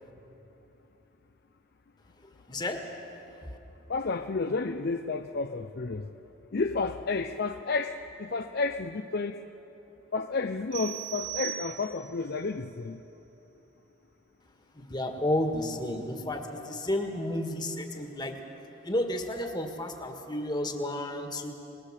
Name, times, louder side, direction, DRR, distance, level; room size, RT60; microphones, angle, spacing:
voice 1, 2.5-2.9 3.4-3.6 14.7-18.4 18.8-21.5, left 1 dB, 20° left, 4 dB, 1.7 m, -32 dB
voice 2, 3.9-6.1 6.5-9.4 10.1-13.0 18.0-18.1, left 4 dB, 50° left, 7 dB, 0.5 m, -31 dB
sound 1, 10.7-12.3, right 14 dB, 85° right, 4.8 m, -38 dB
25.0 x 20.5 x 7.4 m, 3.0 s
head